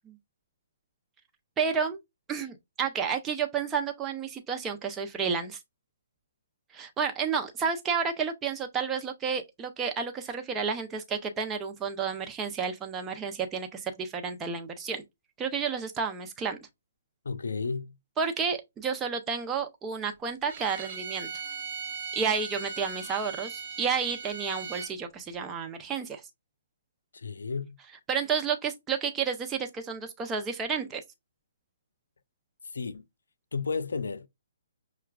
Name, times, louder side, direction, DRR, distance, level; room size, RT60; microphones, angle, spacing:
voice 1, 1.6-2.0 2.3-5.6 6.7-15.0 15.4-16.6 18.2-21.3 22.1-26.2 28.1-31.0, right 6 dB, 15° right, 0.6 m, -31 dB
voice 2, 17.2-18.0 27.1-27.8 32.7-33.1 33.5-34.3, left 4 dB, 80° left, 0.4 m, -32 dB
Bowed string instrument, 20.5-24.9, right 6 dB, 45° right, 0.9 m, -38 dB
5.7 x 2.2 x 2.3 m
hypercardioid pair, 140°, 0 cm